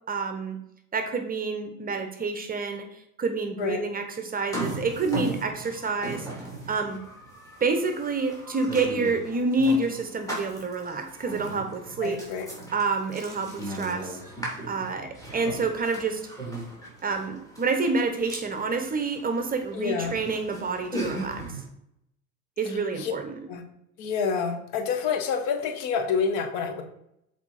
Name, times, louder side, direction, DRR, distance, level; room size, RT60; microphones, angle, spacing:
voice 1, 0.1-0.6 0.9-6.3 6.7-7.0 7.6-12.2 12.7-14.2 14.7-16.2 17.0-21.4 22.6-23.4, right 3 dB, 20° right, 6 dB, 0.9 m, -28 dB
sound 1, 4.4-21.6, right 1 dB, 10° left, 2.7 m, -38 dB
voice 2, 12.0-12.5 19.7-20.2 22.7-23.1 23.5-23.6 24.0-26.8, left 6 dB, 50° left, 5 dB, 1.2 m, -28 dB
7.2 x 4.3 x 4.1 m, 0.77 s
figure-of-eight pair, 80°, 44 cm